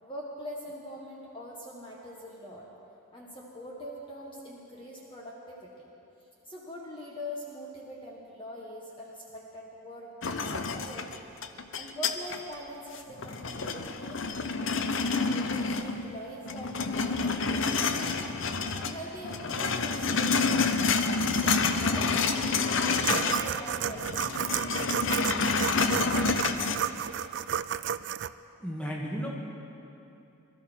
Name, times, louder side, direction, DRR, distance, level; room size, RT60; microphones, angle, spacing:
voice 1, 0.0-2.7 3.1-5.8 6.4-11.3 11.7-14.4 14.9-20.9 21.3-25.0 26.3-26.4 26.8-27.5, equal, 25° left, -3 dB, 1.5 m, -43 dB
sound 1, 10.2-12.5 12.9-16.2 16.5-19.0 19.2-23.5 23.8-26.8, left 4 dB, 60° left, 0.7 m, -28 dB
sound 2, 23.0-28.3, right 9 dB, 55° right, 0.3 m, -32 dB
voice 2, 28.6-29.3, equal, 5° left, -3 dB, 1.8 m, -33 dB
21.5 x 13.0 x 4.5 m, 2.8 s
head